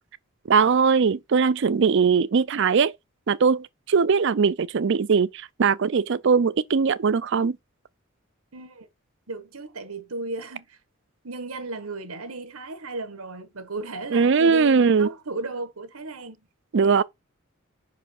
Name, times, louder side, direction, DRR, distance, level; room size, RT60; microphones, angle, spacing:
voice 1, 0.5-2.9 3.3-7.6 14.1-15.1 16.7-17.0, right 5 dB, 55° right, 0.4 m, -20 dB
voice 2, 8.5-8.9 9.3-10.8 11.2-16.4 16.8-17.0, right 3 dB, 90° right, 1.4 m, -35 dB
5.6 x 4.6 x 4.3 m
head